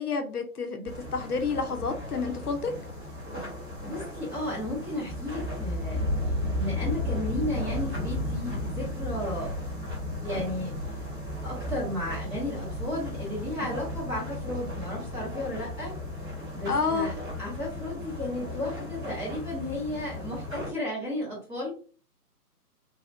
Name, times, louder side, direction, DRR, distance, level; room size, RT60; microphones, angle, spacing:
voice 1, 0.0-0.8 1.1-2.7 16.7-17.1, left 4 dB, 70° left, 5 dB, 0.7 m, -29 dB
sound 1, 0.9-20.7, left 1 dB, 30° right, 1.4 m, -34 dB
voice 2, 3.8-9.5 10.2-10.7 11.4-16.0 16.5-17.1 17.4-21.7, left 1 dB, 5° right, -8 dB, 0.8 m, -34 dB
3.3 x 2.4 x 2.6 m, 0.39 s
figure-of-eight pair, 135°, 46 cm